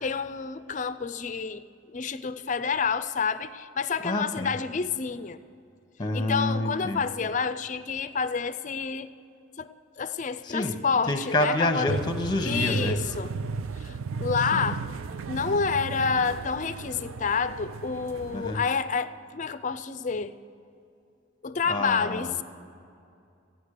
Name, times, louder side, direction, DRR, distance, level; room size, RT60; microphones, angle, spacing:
voice 1, 0.0-5.4 6.1-9.1 9.6-9.7 10.0-12.0 12.4-13.3 13.8-14.8 15.3-20.3 21.4-22.4, left 5 dB, 40° left, 14 dB, 0.4 m, -29 dB
voice 2, 4.0-4.5 6.0-7.0 10.4-10.8 11.1-13.0 14.5-14.7 18.3-18.6 21.7-22.3, left 1 dB, 20° left, 6 dB, 1.0 m, -28 dB
sound 1, 11.9-18.7, right 5 dB, 85° right, 0.4 m, -35 dB
15.0 x 9.3 x 6.5 m, 2.5 s
head